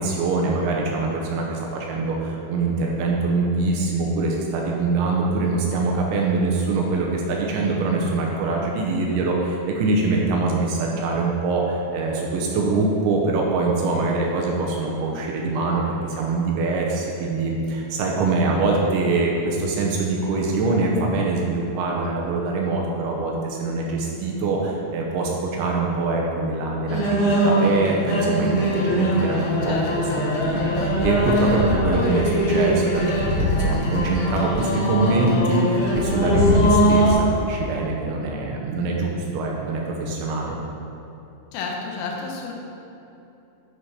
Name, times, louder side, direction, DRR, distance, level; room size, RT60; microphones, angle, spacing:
voice 1, 0.0-30.1 30.4-40.6, right 3 dB, 80° right, -1 dB, 2.9 m, -24 dB
sound 1, 26.9-37.1, equal, 65° left, 1.8 m, -21 dB
voice 2, 29.7-30.1 41.5-42.5, left 4 dB, 90° left, -1 dB, 3.7 m, -31 dB
11.5 x 5.1 x 5.6 m, 3.0 s
omnidirectional pair, 5.9 m